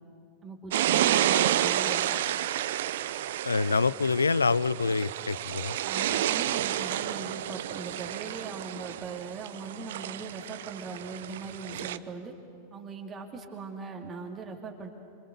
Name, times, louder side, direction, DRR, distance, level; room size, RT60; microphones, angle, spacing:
voice 1, 0.4-2.1 5.8-12.3 12.7-14.9, right 4 dB, 25° right, 2 dB, 2.4 m, -40 dB
sound 1, 0.7-12.0, right 12 dB, 55° right, 0.7 m, -30 dB
voice 2, 3.4-5.8, left 4 dB, 75° left, 20 dB, 0.5 m, -26 dB
27.5 x 26.0 x 6.9 m, 2.6 s
figure-of-eight pair, 90°, 0 cm